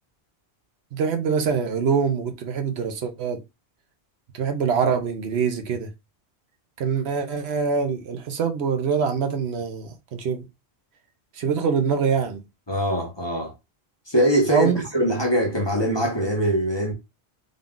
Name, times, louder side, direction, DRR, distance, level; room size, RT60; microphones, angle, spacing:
voice 1, 0.9-3.4 4.3-5.9 6.8-10.5 11.4-12.4 14.5-14.8, right 6 dB, 75° right, 0.9 m, -24 dB
voice 2, 12.7-13.5 14.1-16.9, right 1 dB, 25° left, 0.9 m, -22 dB
3.8 x 2.3 x 3.6 m
omnidirectional pair, 1.1 m